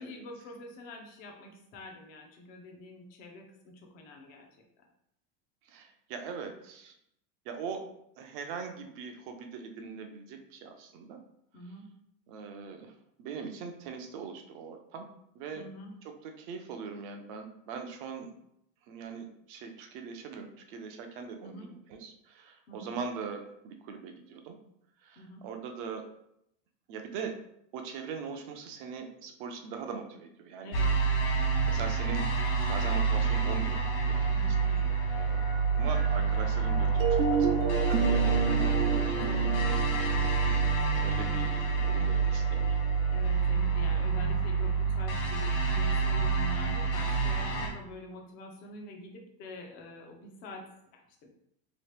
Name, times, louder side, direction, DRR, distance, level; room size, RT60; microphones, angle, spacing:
voice 1, 0.0-4.4 4.8-4.9 11.5-11.9 15.5-15.9 21.4-21.7 22.7-23.0 25.2-25.4 30.6-30.9 34.3-34.9 39.2-39.7 40.0-40.4 43.1-51.3, left 1 dB, 25° left, 2 dB, 0.4 m, -46 dB
voice 2, 5.7-6.9 7.5-7.8 8.2-11.2 12.3-12.9 13.2-15.6 16.2-18.3 18.9-24.6 25.0-26.0 26.9-27.4 27.7-30.8 31.3-32.3 32.7-34.2 35.1-35.4 35.7-37.6 37.9-39.3 41.0-42.8, right 6 dB, 40° right, 5 dB, 0.4 m, -41 dB
sound 1, 30.7-47.7, right 5 dB, 55° left, 1.1 m, -27 dB
sound 2, 37.0-42.8, right 6 dB, 80° right, 0.7 m, -32 dB
3.0 x 2.8 x 3.2 m, 0.75 s
supercardioid pair, 160°, 41 cm